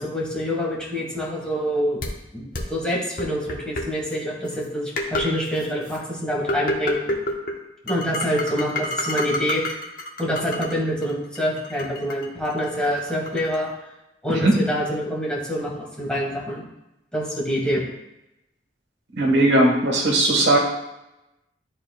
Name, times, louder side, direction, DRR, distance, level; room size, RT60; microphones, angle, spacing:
voice 1, 0.0-2.0 2.3-7.2 7.8-9.8 10.2-13.7 14.2-16.6 17.1-17.8, equal, 5° left, -5 dB, 1.9 m, -26 dB
sound 1, 2.0-2.1 2.5-2.6 3.2-3.8 4.5-4.6 5.0-5.3 5.6-6.0 6.5-7.5 7.9-10.7 11.0-13.6, left 1 dB, 50° left, 0.9 m, -28 dB
voice 2, 19.1-20.6, right 1 dB, 70° right, 0 dB, 1.3 m, -18 dB
11.0 x 4.3 x 2.3 m, 0.92 s
head